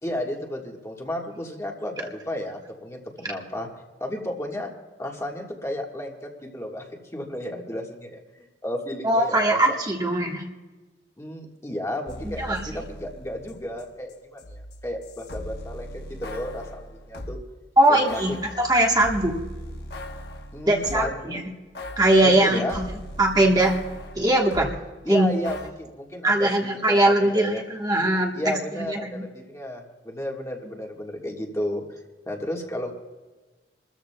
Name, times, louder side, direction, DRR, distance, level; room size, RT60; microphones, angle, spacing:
voice 1, 0.0-3.7 4.0-4.7 5.0-9.6 11.2-15.9 16.2-17.4 17.9-18.2 20.5-21.4 22.2-22.8 25.0-27.6 28.3-31.8 32.3-32.9, left 1 dB, 15° left, 0 dB, 1.5 m, -33 dB
voice 2, 9.0-10.4 12.2-12.7 17.8-19.4 20.7-21.4 22.0-22.9 23.2-23.7 24.1-24.8 25.1-25.3 26.2-28.6 28.9-29.2, right 1 dB, 25° right, 0 dB, 1.3 m, -21 dB
sound 1, 12.1-17.4 18.1-21.3 21.7-24.8 25.4-25.7, left 1 dB, 65° left, 1.1 m, -39 dB
27.5 x 13.5 x 2.3 m, 1.3 s
head